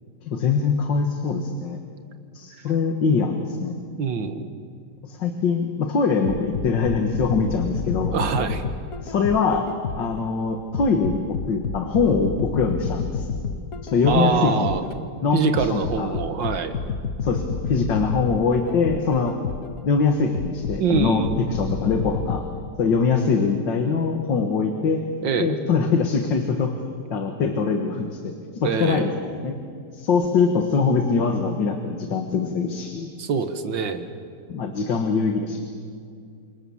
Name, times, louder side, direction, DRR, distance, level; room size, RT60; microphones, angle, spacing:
voice 1, 0.2-1.8 2.3-3.8 5.0-8.2 9.0-9.7 10.0-13.3 13.8-14.7 15.2-16.2 17.2-19.3 19.8-22.4 22.8-25.0 25.4-26.7 27.1-29.1 29.4-29.6 29.9-33.1 34.5-35.6, left 5 dB, 85° left, 5 dB, 2.3 m, -23 dB
voice 2, 4.0-4.5 8.1-8.6 14.1-14.8 15.3-16.8 20.8-21.5 25.2-25.6 28.6-29.2 33.2-34.1, right 6 dB, 90° right, 8 dB, 2.2 m, -24 dB
sound 1, 6.2-10.2 10.7-15.0 15.5-19.8 20.3-22.4, left 5 dB, 55° left, 1.5 m, -29 dB
29.0 x 26.5 x 7.2 m, 2.3 s
omnidirectional pair, 1.9 m